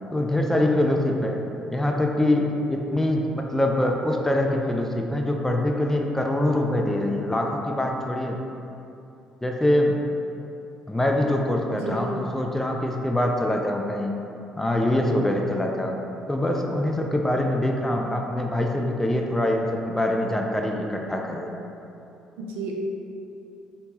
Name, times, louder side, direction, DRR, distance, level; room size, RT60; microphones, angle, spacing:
voice 1, 0.1-1.4 1.7-8.4 9.4-10.0 10.9-14.2 14.6-16.0 16.3-21.5, left 1 dB, 10° left, 1 dB, 0.3 m, -24 dB
voice 2, 11.7-12.1 22.4-22.7, right 4 dB, 60° right, -1 dB, 0.4 m, -32 dB
3.4 x 2.7 x 2.7 m, 2.8 s
figure-of-eight pair, 45°, 3 cm